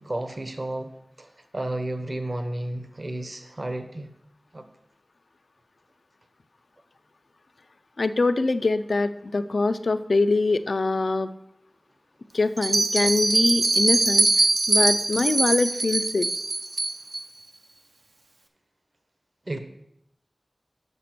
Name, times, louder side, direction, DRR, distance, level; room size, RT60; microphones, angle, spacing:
voice 1, 0.0-4.1 4.5-4.7 19.5-19.6, right 1 dB, 50° right, 8 dB, 0.9 m, -32 dB
voice 2, 8.0-11.3 12.3-14.3 14.7-16.3, left 3 dB, 75° left, 10 dB, 0.4 m, -23 dB
Bell, 12.6-17.2, right 2 dB, 85° right, 0.8 m, -22 dB
6.8 x 5.9 x 5.8 m, 0.77 s
wide cardioid pair, 45°, 0 cm